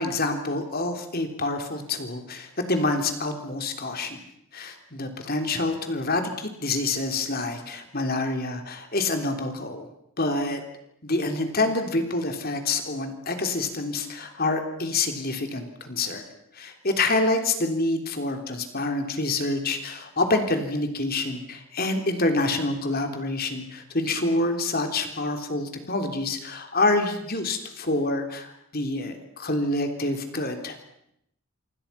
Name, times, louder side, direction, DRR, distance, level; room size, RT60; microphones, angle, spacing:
voice 1, 0.0-4.2 4.5-9.9 10.2-10.6 11.0-16.2 16.5-30.8, left 2 dB, 45° left, 6 dB, 3.5 m, -27 dB
28.0 x 26.0 x 5.9 m, 0.76 s
head